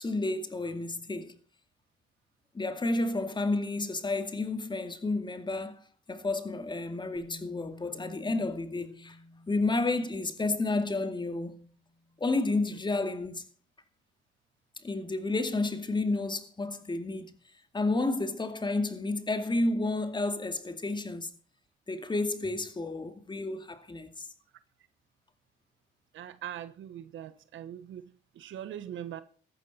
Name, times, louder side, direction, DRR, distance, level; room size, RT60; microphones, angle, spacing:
voice 1, 0.0-1.4 2.5-5.7 6.1-9.2 9.5-11.6 12.2-13.4 14.8-17.3 17.7-21.3 21.9-24.3, left 2 dB, 25° left, 2.3 m, -31 dB
Bass guitar, 7.1-13.2, left 1 dB, 10° right, 7.7 m, -54 dB
voice 2, 26.1-28.0 28.4-29.2, right 10 dB, 75° right, 1.1 m, -41 dB
14.5 x 12.0 x 4.3 m
cardioid pair, 90°, 20 cm